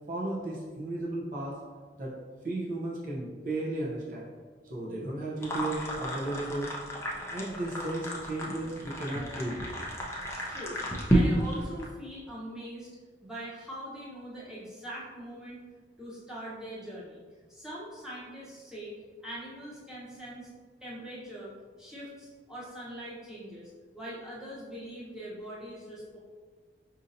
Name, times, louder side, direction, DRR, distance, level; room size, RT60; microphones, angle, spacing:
voice 1, 0.1-1.5 2.0-2.1 2.4-4.3 4.7-6.7 7.3-9.6, right 2 dB, 45° right, -5 dB, 0.7 m, -34 dB
sound 1, 5.4-11.9, right 1 dB, 15° left, 0.5 m, -32 dB
voice 2, 10.5-10.8 11.1-12.9 13.2-15.6 16.0-17.2 17.5-18.9 19.2-20.5 20.8-21.5 21.8-26.2, right 1 dB, 5° right, -9 dB, 0.9 m, -42 dB
5.1 x 2.7 x 2.6 m, 1.5 s
head